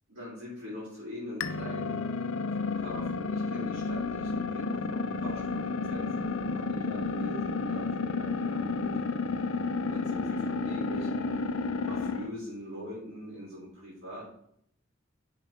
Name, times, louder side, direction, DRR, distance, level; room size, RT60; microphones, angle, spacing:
voice 1, 0.1-2.0 2.5-8.9 9.9-11.5 11.8-14.3, equal, 80° right, -6 dB, 3.0 m, -42 dB
sound 1, 1.4-12.3, left 4 dB, 85° left, 0.5 m, -31 dB
9.9 x 4.6 x 3.6 m, 0.70 s
head